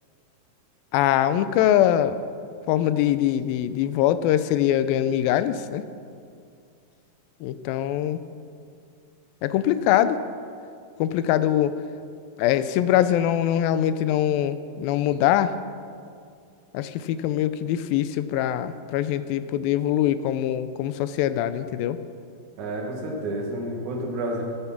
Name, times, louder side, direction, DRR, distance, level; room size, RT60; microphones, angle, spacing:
voice 1, 0.9-2.2 2.7-5.8 7.4-8.2 9.4-10.2 11.0-11.7 12.4-15.5 16.7-22.0, left 11 dB, 85° left, 13 dB, 2.3 m, -23 dB
voice 2, 22.6-24.4, right 1 dB, 60° right, -1 dB, 2.9 m, -30 dB
11.0 x 9.9 x 5.9 m, 2.3 s
omnidirectional pair, 4.2 m